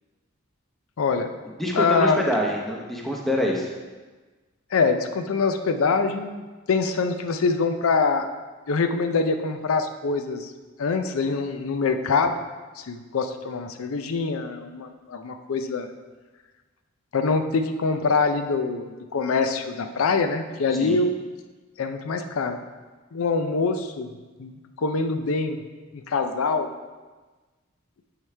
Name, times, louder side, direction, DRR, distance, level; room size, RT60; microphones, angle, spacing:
voice 1, 1.0-1.3 1.7-2.2 4.7-8.3 8.7-10.5 10.8-12.3 12.8-15.9 17.1-21.1 21.8-22.6 23.1-24.1 24.4-25.6 25.9-26.7, left 4 dB, 85° left, 8 dB, 0.5 m, -24 dB
voice 2, 1.6-3.7 20.8-21.0, equal, ahead, -1 dB, 0.7 m, -25 dB
8.9 x 4.8 x 3.3 m, 1.3 s
head